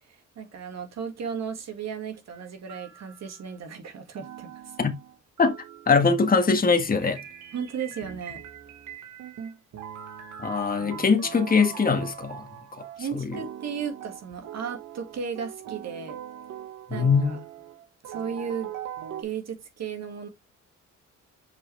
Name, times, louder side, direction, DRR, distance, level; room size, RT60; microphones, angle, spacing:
voice 1, 0.1-4.5 7.5-8.4 13.0-16.2 16.9-17.4 18.0-18.7 19.2-20.3, right 7 dB, 60° right, 2.1 m, -35 dB
sound 1, 2.3-3.5 4.1-19.2, right 10 dB, 75° right, 1.6 m, -41 dB
voice 2, 5.9-7.2 10.4-12.4 13.1-13.4 16.9-17.4, left 4 dB, 30° left, 1.6 m, -22 dB
6.8 x 4.9 x 3.3 m
cardioid pair, 90°, 30 cm